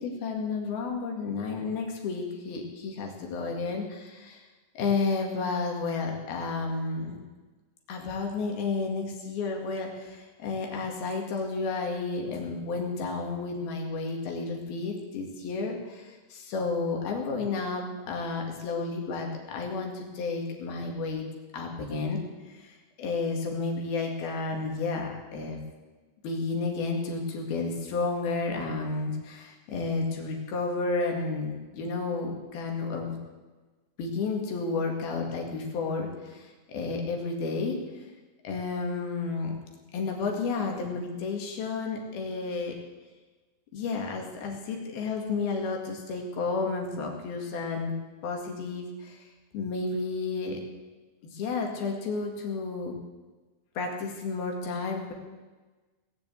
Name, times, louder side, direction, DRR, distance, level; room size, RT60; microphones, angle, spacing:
voice 1, 0.0-4.4 4.8-7.2 7.9-21.3 21.5-22.2 22.5-25.6 26.2-33.2 34.0-37.8 38.4-39.5 39.9-42.8 43.7-47.9 48.2-49.3 49.5-50.6 51.2-52.9 53.8-55.1, left 4 dB, 85° left, 1 dB, 4.0 m, -31 dB
19.0 x 7.6 x 8.4 m, 1.3 s
omnidirectional pair, 4.2 m